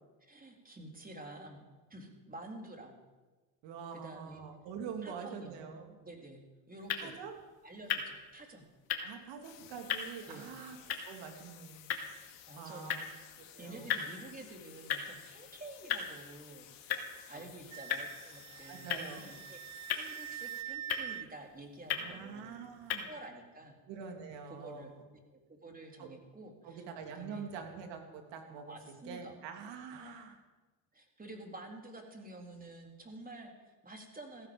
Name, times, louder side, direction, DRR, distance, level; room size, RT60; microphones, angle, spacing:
voice 1, 0.2-1.6 1.9-3.0 3.9-4.4 5.0-5.6 6.0-6.4 6.7-7.1 7.6-8.7 10.3-10.5 12.5-13.0 13.6-19.6 19.9-22.6 23.0-23.8 24.5-24.9 25.5-27.5 28.7-29.4 29.9-30.1 30.9-34.5, right 2 dB, 20° right, 2 dB, 3.9 m, -50 dB
voice 2, 3.6-6.0 7.0-7.4 9.0-10.8 11.0-11.8 12.6-13.0 13.4-14.1 17.3-17.5 18.7-19.2 21.9-23.1 23.9-25.0 26.0-26.1 26.6-28.8 29.0-30.4, right 6 dB, 75° right, 4 dB, 3.1 m, -45 dB
sound 1, 6.8-23.0, left 8 dB, 55° left, 2.7 m, -41 dB
sound 2, 9.4-20.6, left 11 dB, 75° left, 2.4 m, -55 dB
Wind instrument woodwind instrument, 17.7-21.3, right 12 dB, 40° right, 0.5 m, -44 dB
16.5 x 14.5 x 5.5 m, 1.2 s
supercardioid pair, 85°, 44 cm